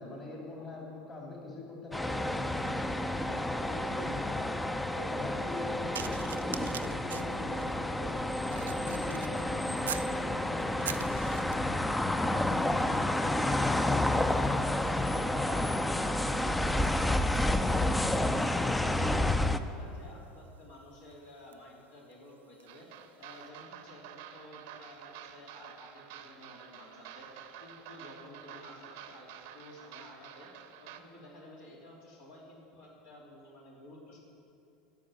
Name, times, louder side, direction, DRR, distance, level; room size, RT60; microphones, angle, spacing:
voice 1, 0.0-4.5 4.9-8.1 8.5-10.7, left 2 dB, 30° left, -2 dB, 2.8 m, -43 dB
sound 1, 1.9-19.6, left 1 dB, 10° left, 0.5 m, -30 dB
sound 2, 5.9-10.2 10.6-11.8 12.6-12.8 13.1-22.8 23.5-23.7, right 9 dB, 85° right, 0.3 m, -46 dB
voice 2, 18.8-22.9 23.2-27.3 27.6-29.3 29.5-30.5 30.8-34.2, left 1 dB, 70° left, -4 dB, 3.2 m, -52 dB
sound 3, 22.7-31.0, right 10 dB, 70° right, 0.7 m, -49 dB
12.0 x 6.6 x 8.8 m, 2.6 s
hypercardioid pair, 80°, 0 cm